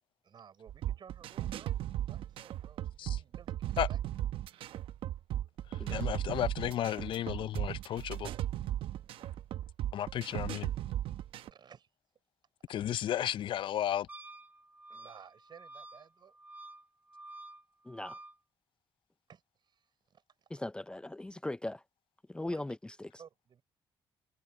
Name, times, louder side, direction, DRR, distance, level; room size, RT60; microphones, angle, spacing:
voice 1, 0.2-4.0 11.4-11.9 14.9-16.3 19.3-20.5 22.4-22.6 23.2-23.6, right 7 dB, 55° right, 6.0 m, -56 dB
sound 1, 0.7-11.5, right 12 dB, 80° right, 0.9 m, -36 dB
voice 2, 5.9-8.3 9.9-10.7 12.7-14.1, left 11 dB, 70° left, 0.5 m, -33 dB
Wind instrument woodwind instrument, 14.1-18.4, right 2 dB, 20° right, 3.2 m, -50 dB
voice 3, 17.9-18.2 20.5-21.8 22.3-23.1, left 2 dB, 10° left, 0.4 m, -39 dB
cardioid pair, 80°, 9 cm